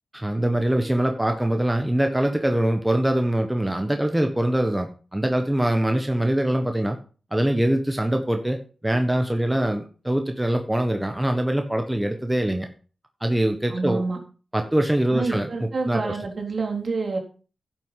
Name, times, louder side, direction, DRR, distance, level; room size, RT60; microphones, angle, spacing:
voice 1, 0.1-7.0 7.3-8.6 8.8-12.7 13.2-14.0 14.5-16.2, right 1 dB, 10° right, 5 dB, 1.4 m, -23 dB
voice 2, 13.7-14.2 15.1-17.2, right 3 dB, 60° right, 1 dB, 3.7 m, -27 dB
11.0 x 8.1 x 5.8 m, 0.38 s
cardioid pair, 60°, 0 cm